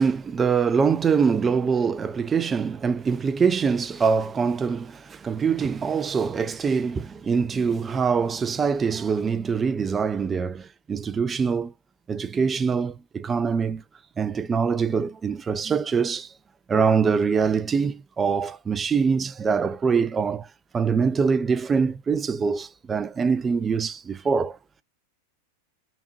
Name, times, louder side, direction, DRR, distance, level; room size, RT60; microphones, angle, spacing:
voice 1, 0.0-11.7 12.1-13.8 14.2-16.3 16.7-20.5 20.7-24.6, right 5 dB, 20° right, 0.5 m, -24 dB
4.1 x 3.5 x 2.8 m
figure-of-eight pair, 90°, 0 cm